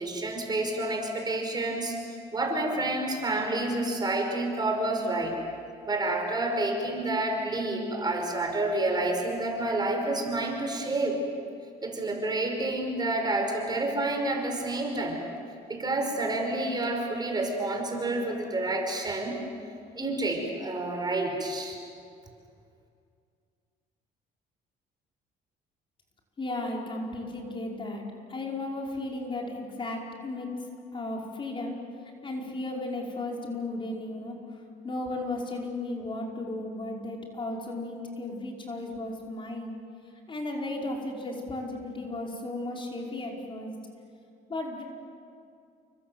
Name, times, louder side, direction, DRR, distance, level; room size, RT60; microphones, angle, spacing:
voice 1, 0.0-2.0 2.3-5.4 5.8-11.2 11.8-15.2 15.7-19.4 20.0-21.8, right 2 dB, 25° right, 3 dB, 5.4 m, -29 dB
voice 2, 26.4-30.5 30.9-31.8 32.2-34.4 34.8-39.7 40.3-43.7 44.5-44.8, left 2 dB, 30° left, 0 dB, 5.0 m, -35 dB
29.5 x 24.5 x 7.9 m, 2.4 s
cardioid pair, 110°, 17 cm